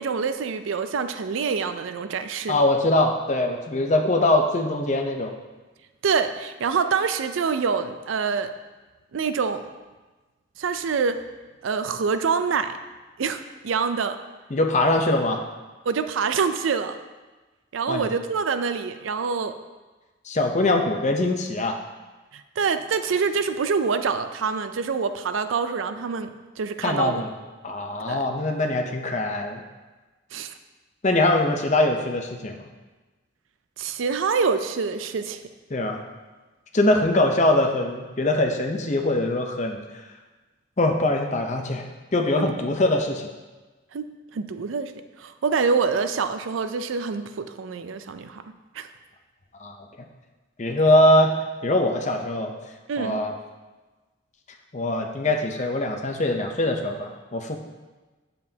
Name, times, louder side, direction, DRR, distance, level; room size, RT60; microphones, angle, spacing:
voice 1, 0.0-2.6 6.0-8.5 9.1-9.7 10.6-11.2 11.6-12.8 13.2-14.2 15.9-17.0 17.7-19.5 22.6-27.2 28.1-28.2 30.3-30.5 33.8-35.4 42.4-42.5 43.9-44.9 45.2-48.4 48.8-48.9 52.9-53.2, right 5 dB, 80° right, 10 dB, 0.4 m, -26 dB
voice 2, 2.5-5.3 14.5-15.4 17.9-18.1 20.2-21.8 26.8-27.4 27.6-29.6 31.0-32.6 35.7-36.0 36.7-39.8 40.8-41.8 42.1-43.3 49.6-49.8 50.6-51.3 51.6-52.5 53.0-53.3 54.7-57.6, left 1 dB, 35° left, 3 dB, 0.7 m, -22 dB
8.1 x 6.9 x 2.8 m, 1.2 s
head